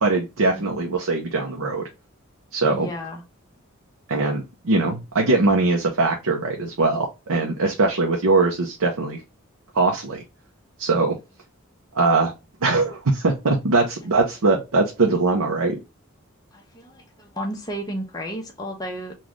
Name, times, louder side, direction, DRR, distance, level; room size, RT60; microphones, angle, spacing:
voice 1, 0.0-1.9 2.5-2.9 4.1-9.2 9.7-10.2 10.8-11.2 11.9-12.3 12.6-15.8, right 3 dB, 75° right, 1 dB, 0.7 m, -21 dB
voice 2, 0.5-0.9 2.7-3.2 16.5-19.2, equal, 15° left, 0 dB, 0.9 m, -33 dB
4.0 x 2.4 x 3.1 m, 0.26 s
head